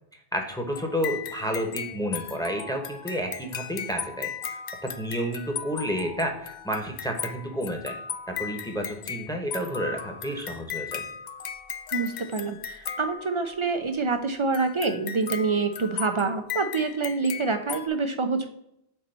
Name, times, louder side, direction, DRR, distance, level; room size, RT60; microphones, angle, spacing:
voice 1, 0.3-4.3 4.8-7.9 8.3-11.0, equal, 5° left, 3 dB, 0.8 m, -30 dB
sound 1, 0.7-13.8 14.5-17.9, left 8 dB, 55° left, 0.5 m, -37 dB
voice 2, 11.9-18.5, right 4 dB, 55° right, 7 dB, 0.3 m, -27 dB
4.6 x 4.1 x 5.3 m, 0.79 s
omnidirectional pair, 1.1 m